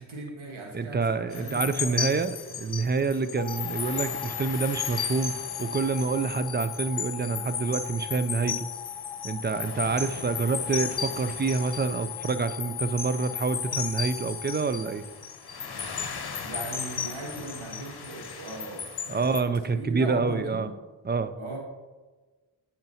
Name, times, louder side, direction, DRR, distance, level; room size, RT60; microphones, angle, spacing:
voice 1, 0.0-2.3 16.4-19.3 19.6-20.7 21.4-21.6, right 2 dB, 80° right, -2 dB, 1.8 m, -38 dB
voice 2, 0.7-5.3 5.6-8.7 9.2-15.0 19.1-20.7 21.1-21.3, right 4 dB, 25° right, 12 dB, 0.4 m, -27 dB
sound 1, 1.3-19.4, left 6 dB, 55° left, 1.0 m, -36 dB
sound 2, 3.4-15.6, left 10 dB, 75° left, 0.6 m, -38 dB
8.7 x 5.8 x 2.7 m, 1.3 s
cardioid pair, 40°, 48 cm